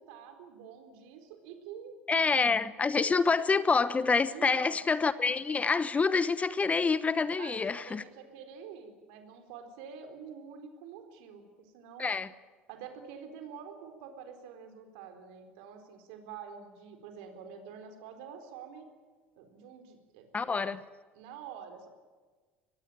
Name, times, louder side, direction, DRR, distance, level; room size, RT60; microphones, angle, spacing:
voice 1, 0.0-2.0 3.1-3.2 4.3-4.8 7.4-12.1 12.7-18.9 19.4-20.7 21.1-21.9, right 7 dB, 60° right, 4.1 m, -47 dB
voice 2, 2.1-8.0 12.0-12.3 20.3-20.8, left 4 dB, 20° left, 1.0 m, -27 dB
24.5 x 19.5 x 8.9 m
figure-of-eight pair, 65°, 6 cm